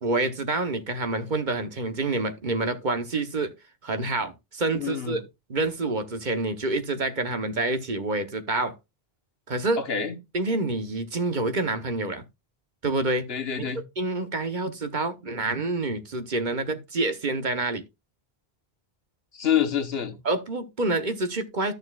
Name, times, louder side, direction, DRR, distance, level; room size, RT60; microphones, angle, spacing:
voice 1, 0.0-3.5 3.8-5.2 5.5-8.7 9.5-9.8 10.3-12.2 12.8-13.3 13.6-13.7 14.0-17.8 20.2-21.7, right 2 dB, 50° right, 1.2 m, -27 dB
voice 2, 4.7-5.2 9.8-10.2 13.3-13.8 19.3-20.2, left 8 dB, 75° left, 1.4 m, -27 dB
13.5 x 6.6 x 2.4 m
omnidirectional pair, 1.0 m